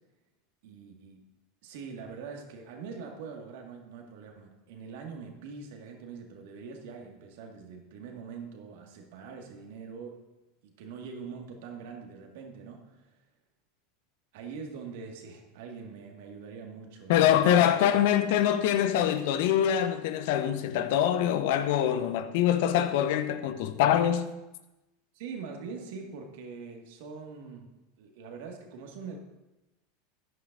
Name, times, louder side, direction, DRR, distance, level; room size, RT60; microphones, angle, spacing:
voice 1, 0.6-1.2 1.6-10.2 10.6-13.0 14.3-17.9 25.1-29.2, right 5 dB, 65° right, 1.9 m, -43 dB
voice 2, 17.1-24.3, left 10 dB, 60° left, 0.7 m, -24 dB
14.0 x 10.5 x 2.6 m
hypercardioid pair, 85°, 0 cm